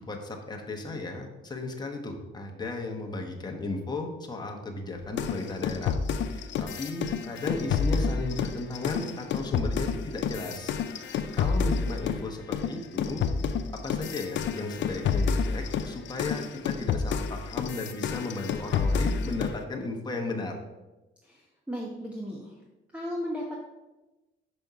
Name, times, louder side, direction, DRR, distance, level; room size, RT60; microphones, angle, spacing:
voice 1, 0.0-6.0 6.3-13.2 13.7-20.6, left 2 dB, 20° left, 2 dB, 1.1 m, -35 dB
sound 1, 5.2-12.2 12.5-19.6, left 6 dB, 70° left, 0.5 m, -29 dB
voice 2, 21.2-22.6 22.9-23.6, equal, 5° right, -2 dB, 1.0 m, -35 dB
5.4 x 5.2 x 4.7 m, 1.1 s
cardioid pair, 90°, 20 cm